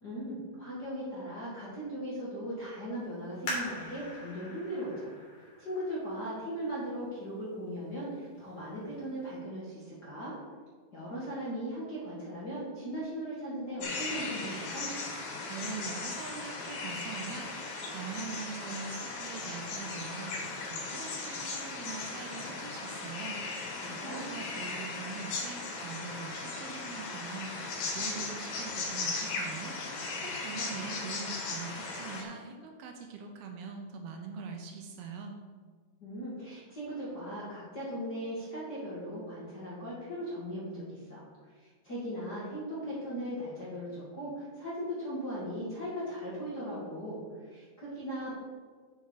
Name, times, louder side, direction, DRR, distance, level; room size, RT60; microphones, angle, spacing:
voice 1, 0.0-5.1 5.6-10.3 10.9-14.9 23.8-24.3 36.0-41.2 41.6-47.2 47.5-48.3, equal, 35° left, -9 dB, 1.7 m, -38 dB
sound 1, 3.5-6.8 7.4-7.5 8.2-8.5 8.9-9.0, left 1 dB, 55° left, 4.1 m, -41 dB
sound 2, 13.8-32.2, left 3 dB, 85° left, 3.9 m, -37 dB
voice 2, 15.5-35.4, right 5 dB, 75° right, 3 dB, 2.6 m, -43 dB
7.8 x 7.0 x 5.0 m, 1.6 s
omnidirectional pair, 4.6 m